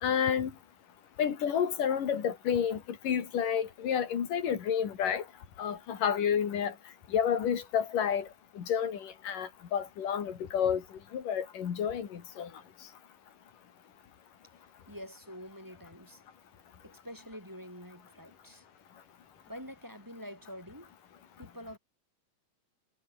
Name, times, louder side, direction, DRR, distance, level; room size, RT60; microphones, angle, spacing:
voice 1, 0.0-0.5 1.2-5.2 5.6-6.7 7.1-8.3 8.6-10.8 11.1-12.5, left 8 dB, 80° left, 4.2 m, -30 dB
voice 2, 14.9-16.2 16.8-18.6 19.5-20.9 21.4-21.8, equal, 5° right, 6.6 m, -46 dB
omnidirectional pair, 3.7 m